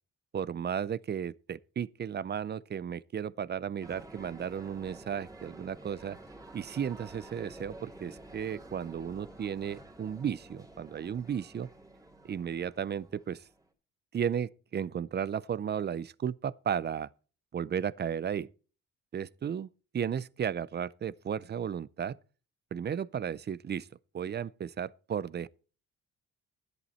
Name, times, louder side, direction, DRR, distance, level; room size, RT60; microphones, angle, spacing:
voice 1, 0.3-6.2 6.5-11.7 12.2-13.4 14.1-17.1 17.5-18.5 19.1-19.7 19.9-22.2 22.7-23.9 24.1-25.5, right 8 dB, 35° right, 0.5 m, -34 dB
sound 1, 3.8-13.7, right 1 dB, 10° right, 2.8 m, -50 dB
11.5 x 11.0 x 4.2 m
cardioid pair, 90°, 30 cm